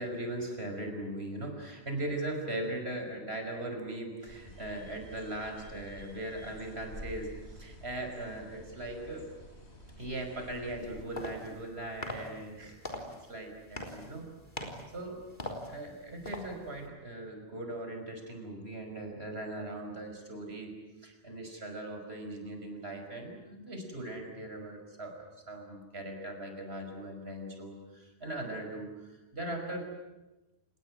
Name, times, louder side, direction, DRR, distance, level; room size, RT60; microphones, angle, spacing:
voice 1, 0.0-9.3 10.0-12.8 13.3-14.2 14.6-15.2 15.6-20.7 21.0-29.9, right 1 dB, 75° right, 3 dB, 5.9 m, -39 dB
sound 1, 4.2-11.0, equal, 90° left, 4.9 m, -50 dB
sound 2, 10.8-16.9, left 1 dB, 50° left, 3.9 m, -43 dB
29.5 x 19.0 x 9.9 m, 1.0 s
omnidirectional pair, 1.1 m